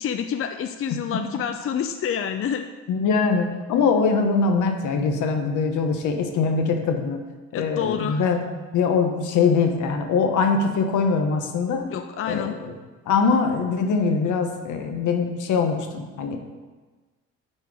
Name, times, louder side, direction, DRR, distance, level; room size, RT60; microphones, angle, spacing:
voice 1, 0.0-2.7 7.5-8.3 11.9-12.6, left 8 dB, 45° left, 7 dB, 0.5 m, -28 dB
voice 2, 2.9-7.2 7.5-8.4 8.7-11.9 12.3-12.7 13.1-16.4, left 5 dB, 80° left, 5 dB, 1.1 m, -22 dB
8.7 x 4.4 x 4.8 m, 1.3 s
cardioid pair, 90°, 30 cm